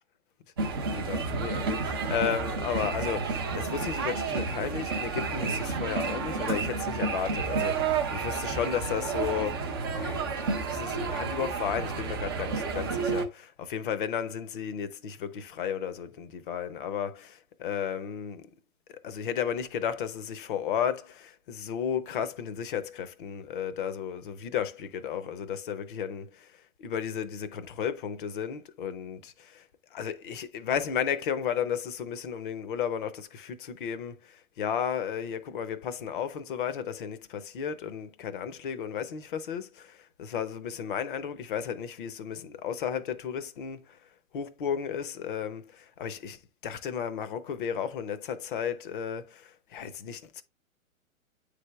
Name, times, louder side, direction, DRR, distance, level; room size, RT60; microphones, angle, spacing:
voice 1, 0.6-18.5 18.9-50.4, left 8 dB, 40° left, 0.7 m, -34 dB
sound 1, 0.6-13.3, right 4 dB, 20° right, 0.4 m, -31 dB
9.2 x 3.4 x 3.3 m
figure-of-eight pair, 115°, 42 cm